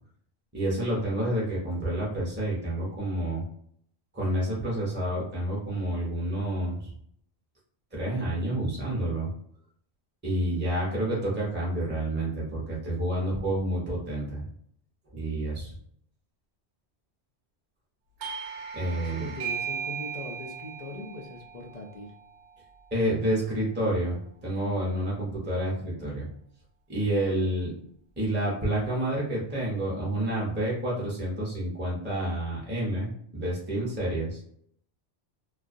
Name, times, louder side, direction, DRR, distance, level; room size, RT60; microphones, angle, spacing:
voice 1, 0.5-3.4 4.1-6.9 7.9-9.3 10.2-14.4 15.1-15.7 18.7-19.3 22.9-26.3 26.9-27.7 28.2-34.4, right 1 dB, 10° right, -5 dB, 0.6 m, -29 dB
Doorbell, 18.2-23.5, right 7 dB, 85° right, 0.9 m, -38 dB
voice 2, 18.9-22.1, left 2 dB, 50° left, 1 dB, 0.5 m, -41 dB
2.3 x 2.2 x 2.5 m, 0.67 s
omnidirectional pair, 1.1 m